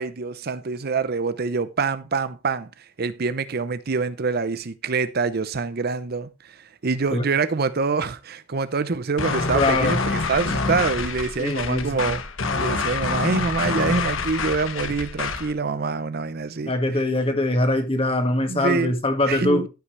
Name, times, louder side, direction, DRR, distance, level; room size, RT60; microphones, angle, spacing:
voice 1, 0.0-10.0 10.3-12.2 12.6-17.0 18.5-19.0 19.3-19.7, right 4 dB, 50° right, 0.6 m, -25 dB
sound 1, 9.2-15.5, left 4 dB, 85° left, 1.3 m, -26 dB
voice 2, 9.5-10.0 11.4-12.0 16.7-19.7, left 2 dB, 30° left, 1.9 m, -22 dB
14.0 x 5.7 x 3.2 m
head